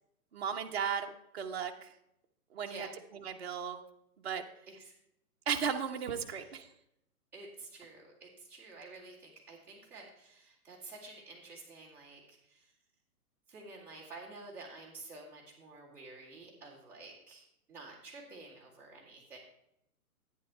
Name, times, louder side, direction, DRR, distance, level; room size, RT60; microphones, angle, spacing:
voice 1, 0.3-1.9 2.5-2.9 3.1-3.8 4.2-4.4 5.5-6.7, right 7 dB, 45° right, 3 dB, 1.0 m, -35 dB
voice 2, 2.6-2.9 4.7-4.9 6.2-6.5 7.3-12.7 13.5-19.4, right 3 dB, 5° right, -10 dB, 2.1 m, -50 dB
11.0 x 9.7 x 3.3 m, 0.79 s
hypercardioid pair, 175°, 45 cm